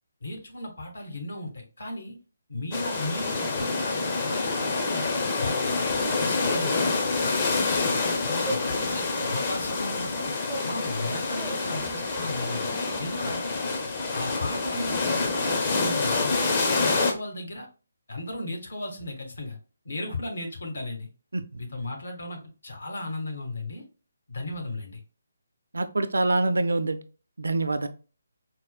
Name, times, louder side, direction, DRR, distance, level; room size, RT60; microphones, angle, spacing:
voice 1, 0.2-2.1 2.5-5.1 5.4-6.9 7.2-7.9 8.2-10.3 10.6-12.7 13.0-13.5 14.1-16.5 16.8-17.7 18.1-19.6 19.8-21.1 21.6-23.8 24.3-25.0, left 1 dB, 65° left, 2 dB, 1.1 m, -35 dB
sound 1, 2.7-17.1, left 3 dB, 35° left, 0.6 m, -27 dB
sound 2, 5.7-6.2 6.5-6.7 7.0-8.9 9.2-10.7 11.0-13.2 14.0-16.0, right 2 dB, 10° right, 0.4 m, -41 dB
voice 2, 25.7-27.0 27.4-27.9, right 2 dB, 75° right, 10 dB, 0.4 m, -25 dB
4.2 x 2.1 x 2.3 m, 0.34 s
figure-of-eight pair, 150°, 0 cm